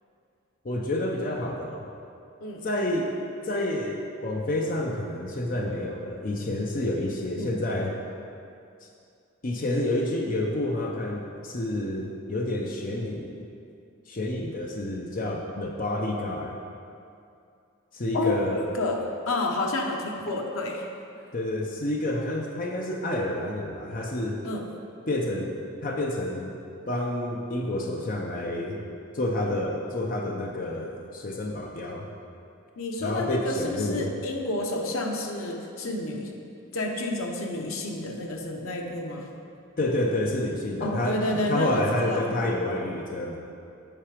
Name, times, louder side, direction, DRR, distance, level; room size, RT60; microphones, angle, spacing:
voice 1, 0.6-1.9 2.6-3.1 3.4-7.9 8.8-8.9 9.4-13.4 14.1-16.6 17.9-18.7 21.3-24.4 25.1-25.6 25.8-26.6 26.9-28.8 29.1-32.1 33.0-34.1 39.8-43.4, left 1 dB, 40° left, 0 dB, 0.6 m, -29 dB
voice 2, 19.3-20.9 24.4-24.6 32.8-36.3 36.7-39.3 40.8-42.3, left 2 dB, 85° left, 1 dB, 1.0 m, -29 dB
8.7 x 5.8 x 5.0 m, 2.5 s
head